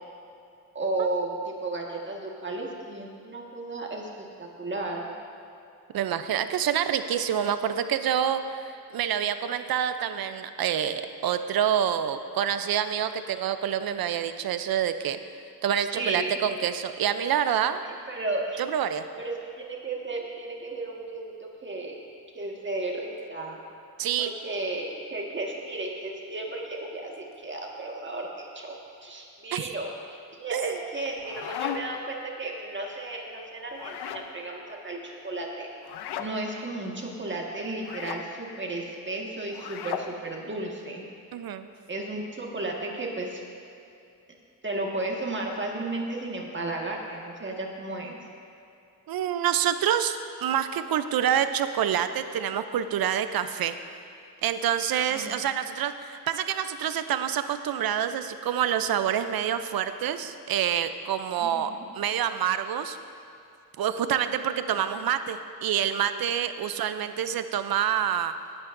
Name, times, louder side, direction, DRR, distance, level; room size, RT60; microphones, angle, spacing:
voice 1, 0.7-5.1 15.9-16.4 17.8-18.6 19.2-22.0 22.3-23.6 24.2-35.7 36.2-41.0 41.9-43.4 44.6-48.2 55.1-55.4 61.4-61.9 66.6-66.7, right 2 dB, 30° right, -1 dB, 1.6 m, -34 dB
voice 2, 5.9-15.2 15.6-17.8 18.6-19.0 24.0-24.3 29.5-29.7 30.5-30.8 41.3-41.7 49.1-53.8 54.4-63.0 63.8-68.3, right 9 dB, 65° right, 10 dB, 0.6 m, -27 dB
sound 1, 31.0-32.1 33.7-34.3 35.8-36.3 37.8-38.2 39.5-40.1, left 9 dB, 75° left, 0.7 m, -35 dB
17.5 x 8.7 x 2.6 m, 2.6 s
cardioid pair, 65°, 39 cm